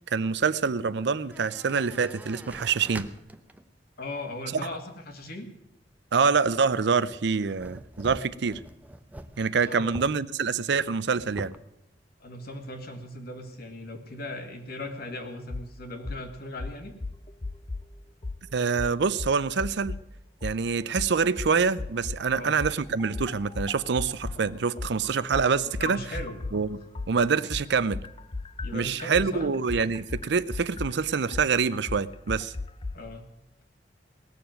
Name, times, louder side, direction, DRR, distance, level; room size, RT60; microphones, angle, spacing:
voice 1, 0.1-3.1 4.5-4.6 6.1-8.6 9.4-11.5 18.5-20.0 20.4-26.0 26.5-26.8 27.1-28.0 28.7-32.5, right 5 dB, 70° right, 0.5 m, -26 dB
sound 1, 1.3-3.7 4.2-4.3 6.3-6.7 7.1-10.2 10.6-10.7 10.9-11.6, right 1 dB, 10° right, 0.7 m, -44 dB
voice 2, 4.0-5.5 9.6-9.9 12.2-16.9 22.3-22.6 25.6-26.4 28.6-29.5 32.9-33.3, left 1 dB, 60° left, 2.1 m, -38 dB
sound 2, 15.5-15.7 16.0-16.2 16.6-17.9 18.2-18.4 18.8-20.0 20.4-20.6 21.0-22.2 22.6-26.6 26.9-32.9, left 3 dB, 30° left, 0.6 m, -35 dB
18.5 x 7.0 x 9.0 m
head